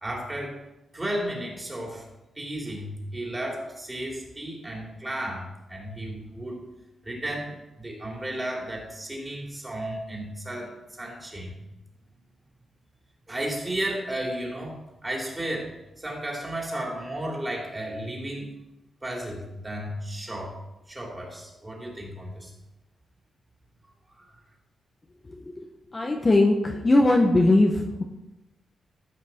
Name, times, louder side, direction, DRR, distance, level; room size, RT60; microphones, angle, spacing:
voice 1, 0.0-0.6 0.9-2.1 2.3-6.6 7.0-11.6 13.3-14.8 15.0-18.5 19.0-20.6 20.9-22.5 24.1-24.3, right 1 dB, 20° right, -1 dB, 3.2 m, -33 dB
voice 2, 25.3-25.6 25.9-28.0, left 2 dB, 25° left, 2 dB, 1.0 m, -20 dB
14.0 x 6.0 x 4.4 m, 0.96 s
cardioid pair, 115°, 0 cm